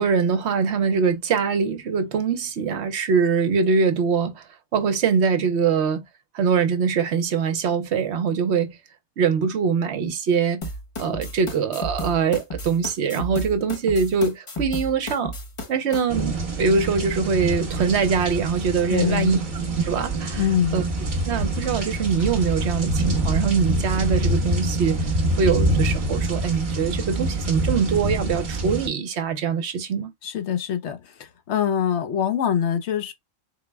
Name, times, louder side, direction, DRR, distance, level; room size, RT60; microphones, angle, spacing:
voice 1, 0.0-4.4 4.7-6.0 6.3-8.8 9.2-10.6 11.0-15.4 15.7-16.3 16.6-19.4 19.8-20.4 20.7-20.8 21.3-25.0 25.4-30.1, right 5 dB, 60° right, 0.9 m, -23 dB
sound 1, 10.6-16.0, equal, 35° left, 0.5 m, -32 dB
sound 2, 16.1-28.9, right 2 dB, 40° right, 1.3 m, -25 dB
voice 2, 18.9-19.3 20.4-20.8 30.2-33.1, left 9 dB, 65° left, 0.8 m, -24 dB
3.9 x 2.1 x 3.3 m
omnidirectional pair, 1.4 m